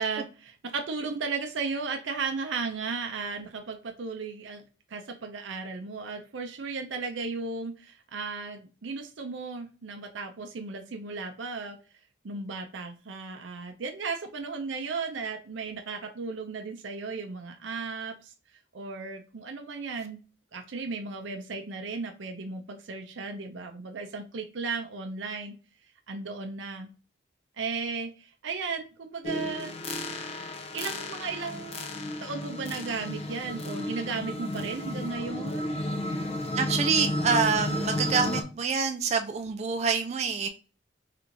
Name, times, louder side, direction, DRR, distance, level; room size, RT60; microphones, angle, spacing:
voice 1, 0.0-4.6 4.9-11.8 12.2-18.3 18.7-20.2 20.5-25.5 26.1-26.9 27.6-29.7 30.7-35.7, right 4 dB, 80° right, 5 dB, 0.6 m, -35 dB
sound 1, 29.2-38.4, left 1 dB, 30° left, 0.6 m, -33 dB
voice 2, 36.4-40.5, right 5 dB, 35° right, 6 dB, 0.3 m, -26 dB
3.3 x 3.1 x 3.8 m, 0.35 s
head